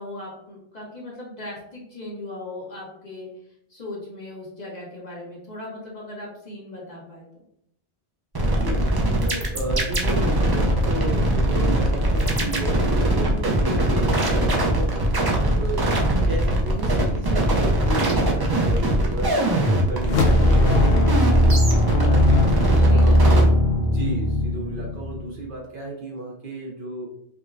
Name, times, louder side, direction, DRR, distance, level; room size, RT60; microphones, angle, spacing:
voice 1, 0.0-3.3 3.7-7.4 19.3-19.6 22.6-23.5, left 2 dB, 40° left, -5 dB, 1.0 m, -38 dB
sound 1, 8.3-23.4, right 1 dB, 40° right, 0.3 m, -21 dB
voice 2, 8.5-8.9 9.2-21.6 21.9-23.5 23.8-27.1, right 1 dB, 55° right, -1 dB, 0.7 m, -34 dB
sound 2, 20.0-25.4, left 1 dB, 65° left, 0.7 m, -19 dB
4.8 x 2.1 x 2.5 m, 0.75 s
omnidirectional pair, 1.2 m